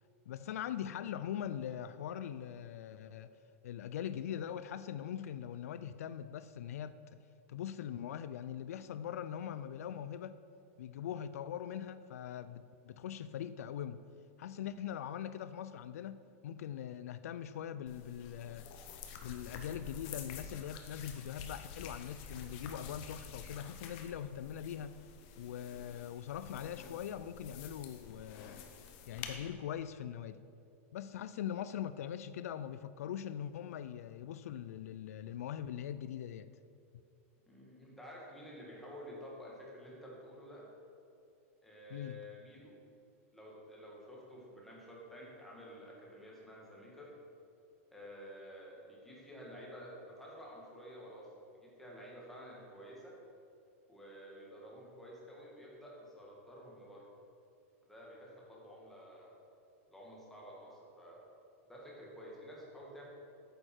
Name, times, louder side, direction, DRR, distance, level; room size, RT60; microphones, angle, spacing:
voice 1, 0.3-3.3 3.6-7.0 7.5-10.4 10.8-14.0 14.4-18.7 19.2-25.0 25.4-28.6 29.1-30.4 30.9-36.5 41.9-42.3, left 9 dB, 85° left, 0.3 m, -42 dB
sound 1, 17.9-29.4, left 6 dB, 40° left, 0.8 m, -49 dB
voice 2, 37.5-40.7 41.6-42.8 43.3-47.1 47.9-51.3 51.6-53.1 53.9-57.0 57.9-59.4 59.9-61.3 61.7-63.1, equal, 5° left, 1.6 m, -51 dB
9.0 x 6.7 x 4.4 m
supercardioid pair, 160°, 8 cm